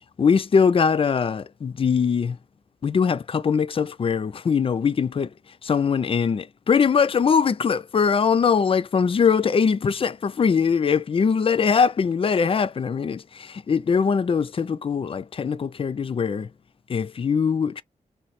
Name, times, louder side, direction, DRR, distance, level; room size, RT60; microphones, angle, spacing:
voice 1, 0.2-2.4 2.8-5.3 5.6-16.5 16.9-17.8, left 6 dB, 35° left, 0.4 m, -22 dB
3.2 x 2.2 x 4.1 m
cardioid pair, 70°, 15 cm